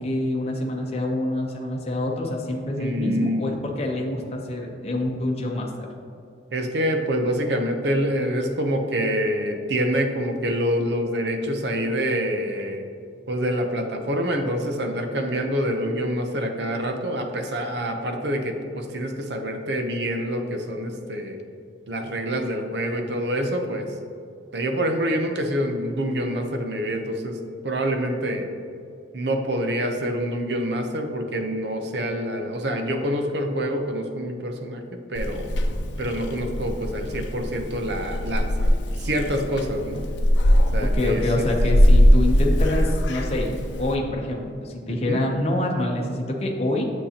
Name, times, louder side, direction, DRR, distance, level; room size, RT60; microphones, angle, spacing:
voice 1, 0.0-5.9 40.8-43.5 43.8-46.9, left 1 dB, 35° left, -1 dB, 0.7 m, -26 dB
voice 2, 2.8-3.5 6.5-12.8 13.3-21.4 21.9-23.9 24.5-27.4 27.6-28.5 29.1-35.5 36.0-40.0 40.7-41.2 44.9-45.2, equal, 60° right, 4 dB, 0.8 m, -26 dB
Purr / Meow, 35.1-43.9, equal, 75° left, 0.7 m, -21 dB
8.2 x 6.6 x 2.9 m, 2.5 s
head